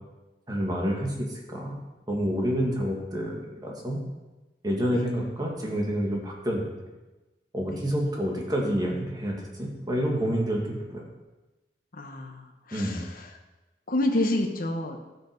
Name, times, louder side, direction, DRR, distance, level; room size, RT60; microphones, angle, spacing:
voice 1, 0.5-1.7 2.1-4.0 4.6-6.6 7.5-11.0 12.7-13.0, equal, 25° right, -1 dB, 2.3 m, -28 dB
voice 2, 11.9-13.3 13.9-15.0, left 1 dB, 55° left, 3 dB, 1.3 m, -29 dB
12.0 x 7.9 x 5.3 m, 1.1 s
head